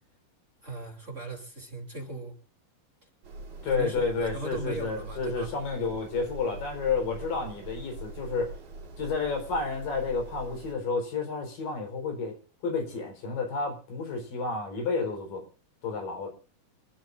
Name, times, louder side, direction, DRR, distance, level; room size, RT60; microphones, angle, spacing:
voice 1, 0.6-2.3 3.7-5.5, right 2 dB, 20° right, 1 dB, 3.3 m, -38 dB
sound 1, 3.2-10.7, right 2 dB, 90° right, 4.4 m, -43 dB
voice 2, 3.6-8.5 9.0-12.4 12.6-15.4 15.8-16.3, left 4 dB, 85° left, 3 dB, 6.0 m, -30 dB
28.0 x 11.5 x 2.6 m, 0.37 s
omnidirectional pair, 3.8 m